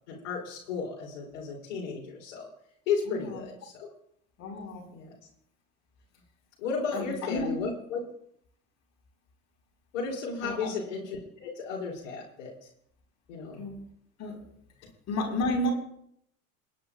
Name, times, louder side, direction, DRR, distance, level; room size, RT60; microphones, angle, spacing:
voice 1, 0.1-2.5 2.9-3.9 4.9-5.1 6.6-8.0 9.9-12.5 13.3-13.7, left 5 dB, 60° left, -3 dB, 3.3 m, -34 dB
voice 2, 3.1-3.4 4.4-4.9 6.9-7.7 10.4-10.7 13.6-13.7 14.2-14.4 15.1-15.7, left 1 dB, 40° left, 1 dB, 4.5 m, -31 dB
28.5 x 9.8 x 2.4 m, 0.70 s
figure-of-eight pair, 65°, 41 cm